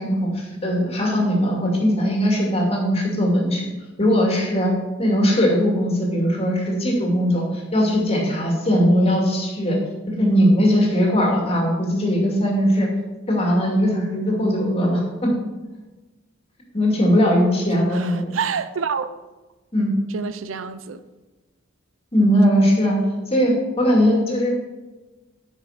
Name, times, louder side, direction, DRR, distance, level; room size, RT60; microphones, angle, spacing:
voice 1, 0.0-3.7 4.0-4.7 5.0-9.8 10.1-12.9 13.3-15.3 16.7-18.3 19.7-19.9 22.1-23.0 23.3-24.5, equal, 30° left, 2.5 m, -19 dB
voice 2, 17.9-19.1 20.1-21.0, right 6 dB, 85° right, 0.6 m, -27 dB
10.0 x 6.2 x 5.1 m
head